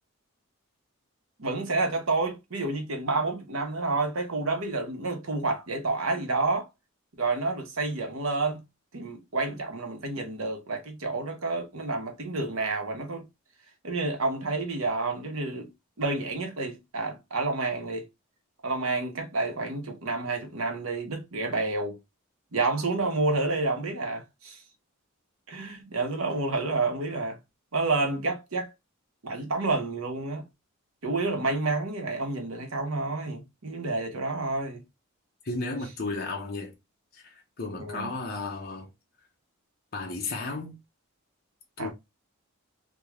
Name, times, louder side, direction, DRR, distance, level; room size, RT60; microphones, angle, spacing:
voice 1, 1.4-6.7 7.2-8.6 8.9-13.3 13.8-15.7 16.0-18.1 18.6-22.0 22.5-24.6 25.5-27.4 27.7-28.7 29.2-30.4 31.0-34.8 37.8-38.1 41.8-41.9, right 3 dB, 75° right, 1.0 m, -29 dB
voice 2, 35.4-36.7 37.1-38.9 39.9-40.8 41.8-41.9, left 3 dB, 45° left, 0.7 m, -34 dB
3.6 x 2.3 x 3.0 m
head